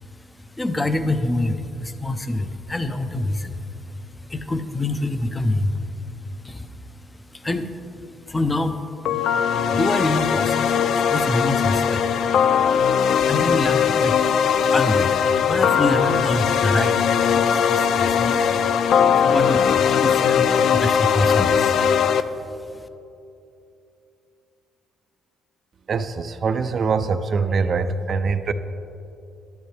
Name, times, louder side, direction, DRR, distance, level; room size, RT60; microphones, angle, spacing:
voice 1, 0.0-9.0 9.3-12.2 12.7-13.0 13.2-17.0 17.3-18.7 19.1-22.7, left 2 dB, 20° left, 9 dB, 0.6 m, -27 dB
sound 1, 9.1-22.2, left 7 dB, 65° left, 0.3 m, -19 dB
voice 2, 25.9-28.5, right 5 dB, 50° right, 10 dB, 0.4 m, -23 dB
11.5 x 9.5 x 3.3 m, 2.8 s
supercardioid pair, 75°, 0 cm